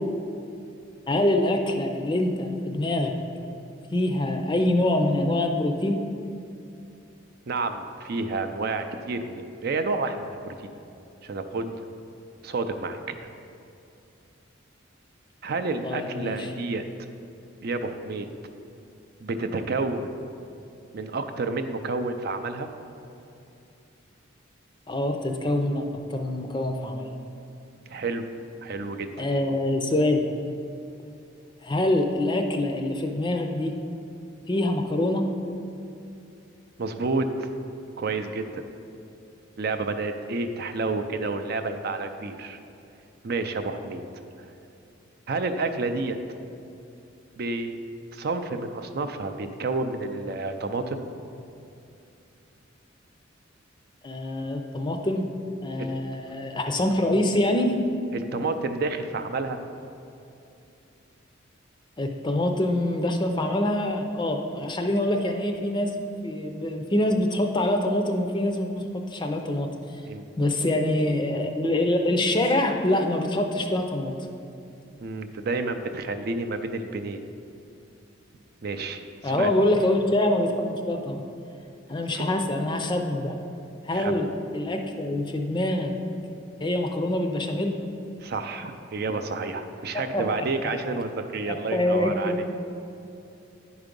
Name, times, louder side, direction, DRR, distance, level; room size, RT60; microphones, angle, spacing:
voice 1, 1.1-3.1 3.9-6.0 15.8-16.5 24.9-27.1 29.2-30.2 31.6-33.7 34.5-35.2 54.0-55.2 55.6-57.8 62.0-65.9 66.2-69.7 70.4-74.3 79.2-80.5 80.9-81.2 81.9-83.4 83.8-84.3 84.5-86.0 86.6-87.7 89.9-90.2 90.9-91.0 91.5-92.3, left 1 dB, 25° left, 4 dB, 0.5 m, -25 dB
voice 2, 7.5-10.8 11.2-11.7 12.4-13.2 15.4-16.8 17.6-18.3 19.2-20.2 20.9-22.7 27.9-28.2 28.6-29.1 36.8-37.5 38.0-38.6 39.6-42.6 43.2-44.0 45.3-46.2 47.3-47.8 48.1-51.0 55.8-55.9 58.1-59.6 70.1-70.2 75.0-77.2 78.6-79.5 82.1-82.3 83.9-84.2 88.2-92.5, right 3 dB, 50° right, 7 dB, 0.5 m, -30 dB
9.7 x 4.8 x 5.2 m, 2.7 s
head